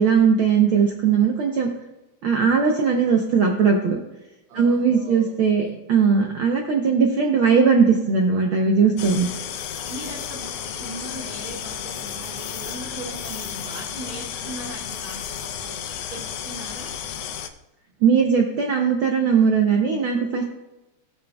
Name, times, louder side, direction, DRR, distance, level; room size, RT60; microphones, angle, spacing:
voice 1, 0.0-1.7 2.2-4.0 4.5-9.3 18.0-20.4, right 6 dB, 90° right, 2 dB, 1.1 m, -19 dB
voice 2, 4.5-5.3 5.6-5.8 9.1-9.2 9.9-15.8 16.1-16.9, right 1 dB, 65° right, -3 dB, 3.0 m, -38 dB
sound 1, 9.0-17.5, left 8 dB, 75° left, 1.5 m, -33 dB
17.5 x 6.5 x 2.3 m, 1.0 s
omnidirectional pair, 3.3 m